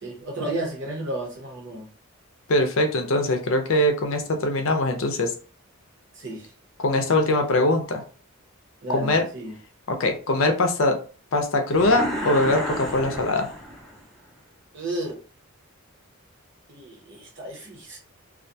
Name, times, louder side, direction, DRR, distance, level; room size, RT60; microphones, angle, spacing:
voice 1, 0.0-1.9 6.1-6.5 8.8-9.6 14.7-15.2 16.7-18.0, right 1 dB, 55° right, 0 dB, 0.9 m, -33 dB
voice 2, 2.5-5.3 6.8-8.0 8.9-9.3 9.9-11.0 11.3-13.5, left 2 dB, 65° left, 4 dB, 0.5 m, -22 dB
sound 1, 11.7-14.0, equal, ahead, 0.6 m, -31 dB
2.4 x 2.2 x 2.6 m, 0.38 s
head